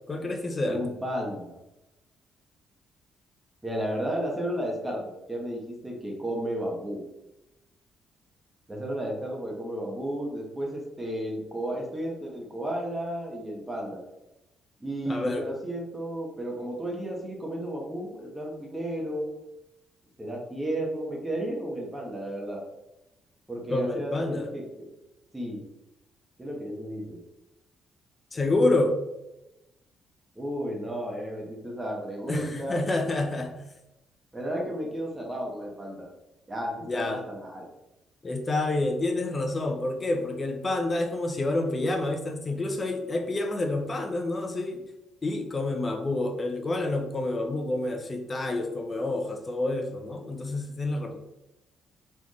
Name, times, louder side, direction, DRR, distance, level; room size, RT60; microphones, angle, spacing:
voice 1, 0.1-0.8 15.1-15.5 23.7-24.5 28.3-29.0 32.3-33.6 36.9-37.2 38.2-44.8 45.2-51.1, left 2 dB, 30° left, 5 dB, 0.7 m, -28 dB
voice 2, 0.7-1.6 3.6-5.0 5.3-7.0 8.7-14.0 14.8-19.3 20.2-22.6 23.5-24.8 25.3-25.6 26.4-27.2 30.3-32.8 34.3-36.1 36.5-37.7, right 1 dB, 15° right, -1 dB, 1.2 m, -33 dB
4.4 x 3.4 x 3.1 m, 0.91 s
cardioid pair, 100°, 0 cm